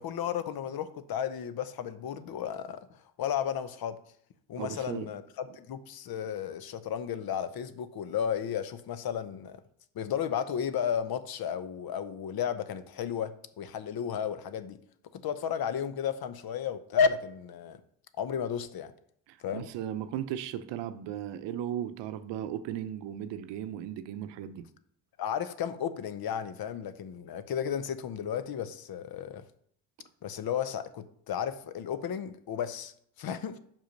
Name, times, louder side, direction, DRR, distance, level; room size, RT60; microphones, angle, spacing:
voice 1, 0.0-2.8 3.2-4.0 4.5-9.6 9.9-14.8 15.1-17.8 18.2-18.9 19.4-19.6 25.2-29.4 30.2-32.9 33.2-33.6, left 8 dB, 55° left, 13 dB, 0.8 m, -33 dB
voice 2, 4.6-5.1 19.3-24.6, right 10 dB, 75° right, 12 dB, 0.6 m, -36 dB
5.5 x 5.0 x 5.2 m, 0.65 s
supercardioid pair, 60°, 43 cm